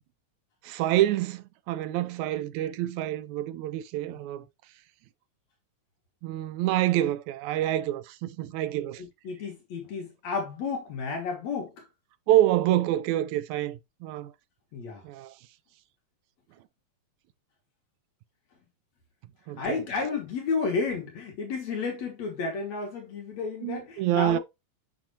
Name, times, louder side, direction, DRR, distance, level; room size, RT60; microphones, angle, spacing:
voice 1, 0.6-4.5 6.2-9.0 12.3-14.3 15.0-15.4 19.5-19.8 23.6-24.4, right 13 dB, 80° right, 1.8 m, -27 dB
voice 2, 9.0-11.9 14.7-15.0 19.6-24.4, left 4 dB, 65° left, 2.6 m, -32 dB
7.3 x 6.0 x 2.8 m
omnidirectional pair, 3.6 m